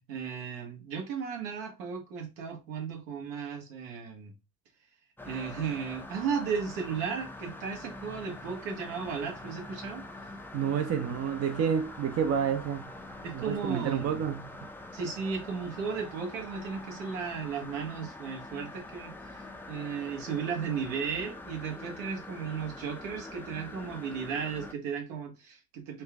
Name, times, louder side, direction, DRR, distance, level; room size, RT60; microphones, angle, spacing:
voice 1, 0.1-4.3 5.2-10.0 13.2-14.2 14.9-26.0, right 6 dB, 75° right, 1.4 m, -35 dB
sound 1, 5.2-24.7, left 2 dB, 5° left, 0.4 m, -44 dB
voice 2, 10.5-12.9 13.3-14.6, right 8 dB, 35° right, 0.6 m, -29 dB
4.3 x 2.3 x 3.4 m
hypercardioid pair, 80°, 41 cm